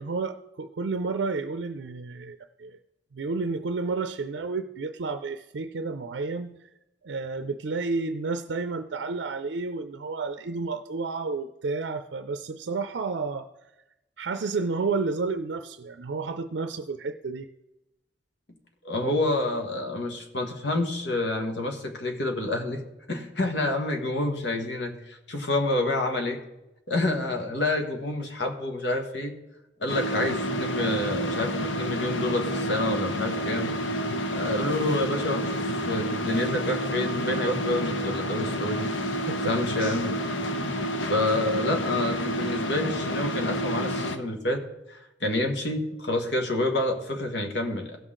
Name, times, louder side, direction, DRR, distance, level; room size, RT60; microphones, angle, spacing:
voice 1, 0.0-2.8 3.1-6.5 7.0-13.5 14.2-17.5 39.3-39.5 40.4-40.5, right 4 dB, 75° right, 10 dB, 0.5 m, -31 dB
voice 2, 18.8-22.8 23.1-26.4 26.9-29.3 29.8-33.7 34.3-38.9 39.4-40.1 40.7-44.6 44.9-48.0, left 2 dB, 70° left, 3 dB, 1.5 m, -28 dB
sound 1, 29.9-44.2, equal, 90° left, 0.8 m, -29 dB
16.0 x 6.3 x 3.8 m, 0.94 s
head